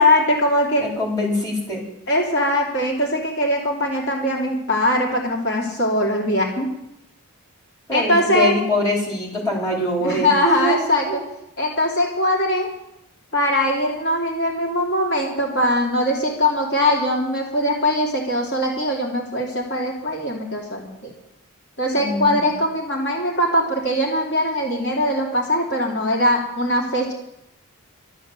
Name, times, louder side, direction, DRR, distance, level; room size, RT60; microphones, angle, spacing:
voice 1, 0.0-0.8 2.1-6.7 7.9-8.5 10.0-11.1 11.6-12.7 13.3-21.1 21.8-27.1, left 1 dB, 50° left, -1 dB, 2.7 m, -21 dB
voice 2, 0.8-1.8 7.9-11.2 22.0-22.4, equal, 15° left, -2 dB, 3.9 m, -24 dB
12.0 x 12.0 x 7.4 m, 0.83 s
head